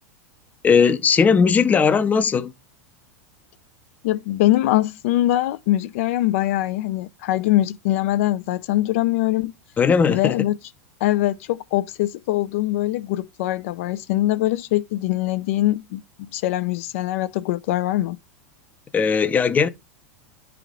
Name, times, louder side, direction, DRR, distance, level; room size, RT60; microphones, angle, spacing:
voice 1, 0.6-2.5 9.8-10.4 18.9-19.7, left 6 dB, 20° left, 0.6 m, -18 dB
voice 2, 4.0-9.5 10.1-10.5 11.0-18.2, left 15 dB, 70° left, 0.5 m, -22 dB
9.9 x 3.5 x 3.6 m
hypercardioid pair, 110°, 7 cm